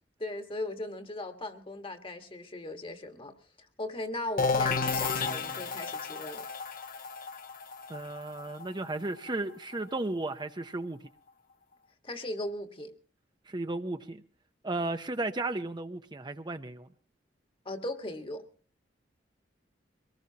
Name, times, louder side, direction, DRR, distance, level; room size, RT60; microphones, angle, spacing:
voice 1, 0.2-3.3 3.8-6.5 12.0-12.9 17.6-18.5, left 1 dB, 30° left, 7 dB, 1.6 m, -38 dB
sound 1, 4.4-10.0, left 4 dB, 55° left, 1.2 m, -32 dB
voice 2, 7.9-11.0 13.5-14.2 14.6-16.9, right 2 dB, 25° right, 8 dB, 0.7 m, -34 dB
23.5 x 19.0 x 2.9 m, 0.41 s
head